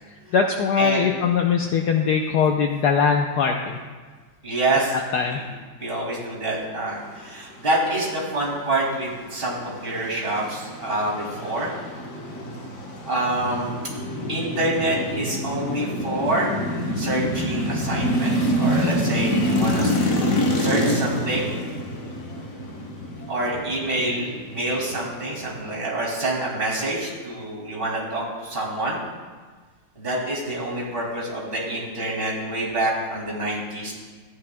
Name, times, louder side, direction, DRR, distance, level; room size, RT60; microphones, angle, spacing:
voice 1, 0.3-3.8 4.9-5.4, left 6 dB, 75° left, 2 dB, 0.9 m, -21 dB
voice 2, 4.4-4.9 5.3-5.4 5.8-11.7 13.1-13.7 14.3-16.5 17.0-20.0 20.5-21.5 23.3-29.0 30.0-33.9, right 1 dB, 25° right, -4 dB, 2.4 m, -26 dB
sound 1, 9.0-25.8, equal, 45° left, 1.2 m, -27 dB
14.0 x 9.5 x 2.2 m, 1.4 s
omnidirectional pair, 2.3 m